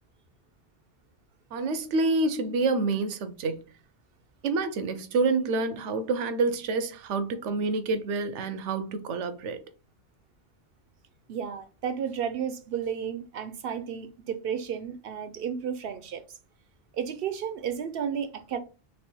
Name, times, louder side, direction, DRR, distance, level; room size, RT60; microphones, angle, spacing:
voice 1, 1.5-3.6 4.4-9.6, right 3 dB, 85° right, 1.0 m, -27 dB
voice 2, 11.3-16.2 16.9-18.6, right 8 dB, 65° right, 0.7 m, -32 dB
3.3 x 3.2 x 4.3 m
omnidirectional pair, 1.2 m